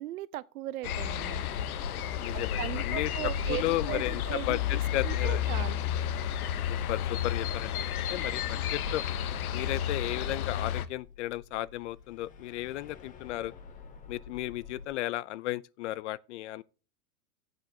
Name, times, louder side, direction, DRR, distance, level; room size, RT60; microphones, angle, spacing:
voice 1, 0.0-1.4 2.3-5.9, right 15 dB, 70° right, 0.7 m, -38 dB
sound 1, 0.8-10.9, left 9 dB, 75° left, 0.9 m, -32 dB
voice 2, 2.2-3.1 3.5-5.6 6.7-9.0 9.5-13.5 14.1-16.6, left 16 dB, 55° left, 0.4 m, -34 dB
sound 2, 10.8-14.9, left 6 dB, 20° left, 0.8 m, -50 dB
14.0 x 7.8 x 2.7 m
hypercardioid pair, 135°, 45 cm